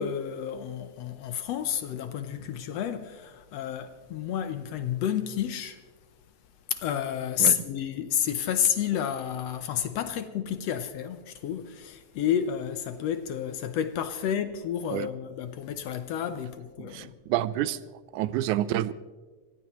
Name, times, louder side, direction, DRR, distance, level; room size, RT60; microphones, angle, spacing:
voice 1, 0.0-5.8 6.7-17.1, left 9 dB, 70° left, 1.7 m, -30 dB
voice 2, 16.9-17.8 18.1-18.9, right 13 dB, 90° right, 2.1 m, -28 dB
25.0 x 17.0 x 3.1 m
omnidirectional pair, 3.4 m